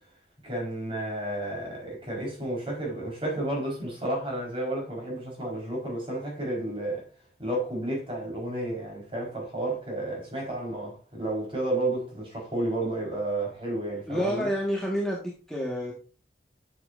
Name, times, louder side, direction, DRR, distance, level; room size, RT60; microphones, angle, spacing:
voice 1, 0.4-7.1 7.4-14.5, right 1 dB, 30° right, 4.4 m, -31 dB
voice 2, 14.1-15.9, equal, 5° left, 1.5 m, -29 dB
10.0 x 7.4 x 2.6 m
head